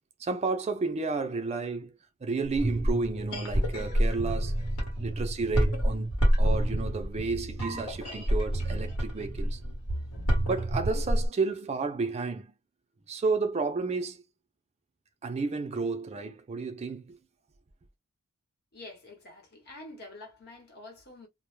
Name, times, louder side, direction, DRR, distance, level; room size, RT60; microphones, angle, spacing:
voice 1, 0.2-1.9 2.2-4.6 5.0-6.1 6.4-9.6 10.4-12.5 13.1-14.2 15.2-17.2, right 4 dB, 30° right, 0.4 m, -31 dB
sound 1, 2.4-11.3, equal, 90° left, 1.1 m, -28 dB
voice 2, 18.7-21.3, left 2 dB, 50° left, 0.9 m, -47 dB
2.1 x 2.0 x 3.0 m
head